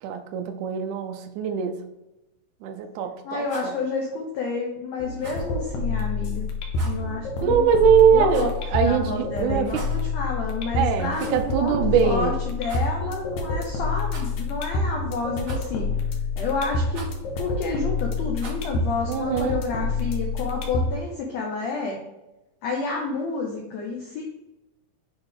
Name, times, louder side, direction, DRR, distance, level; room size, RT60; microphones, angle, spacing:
voice 1, 0.0-1.8 2.6-3.7 7.4-9.8 10.8-12.3 19.1-19.6, right 7 dB, 80° right, 6 dB, 1.8 m, -22 dB
voice 2, 3.2-6.5 6.8-7.7 8.1-15.9 16.4-17.1 17.4-22.0 22.6-24.2, left 4 dB, 90° left, 0 dB, 1.5 m, -30 dB
Rattle, 3.4-3.7 5.2-5.5 6.7-7.0 8.3-8.7 9.6-10.0 11.1-11.5 11.8-11.9 12.6-12.9 14.0-14.5 15.4-15.9 16.9-17.2 18.4-18.7, right 3 dB, 35° right, 2.4 m, -42 dB
sound 1, 5.0-21.0, left 3 dB, 70° left, 1.9 m, -28 dB
7.9 x 3.5 x 3.5 m, 0.98 s
omnidirectional pair, 4.2 m